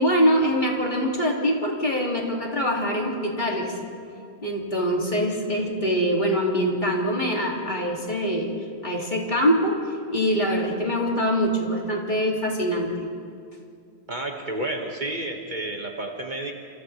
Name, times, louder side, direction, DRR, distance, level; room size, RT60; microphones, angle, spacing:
voice 1, 0.0-3.7 4.4-8.5 8.8-9.8 10.1-13.0, equal, 45° left, -1 dB, 2.8 m, -24 dB
voice 2, 14.1-16.6, right 2 dB, 45° right, 1 dB, 1.9 m, -31 dB
29.0 x 28.0 x 3.3 m, 2.3 s
omnidirectional pair, 1.1 m